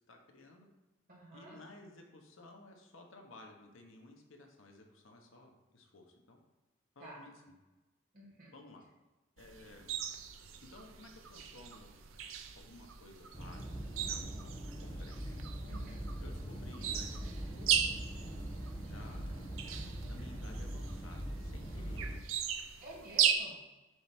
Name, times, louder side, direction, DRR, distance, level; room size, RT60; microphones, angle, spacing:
voice 1, 0.1-0.7 1.3-6.4 6.9-7.3 8.5-8.8 9.4-9.9 10.7-11.9 12.6-15.1 16.2-18.5 18.8-19.4 20.0-22.2, left 2 dB, 80° left, 2 dB, 1.2 m, -55 dB
voice 2, 1.1-1.6 7.0-7.2 8.1-8.5 15.7-16.0 22.8-23.6, right 1 dB, 45° right, -4 dB, 2.4 m, -50 dB
sound 1, 9.4-23.3, right 9 dB, 85° right, 0.6 m, -38 dB
sound 2, 13.3-22.2, right 1 dB, 25° left, 1.2 m, -42 dB
7.8 x 3.3 x 6.0 m, 1.1 s
head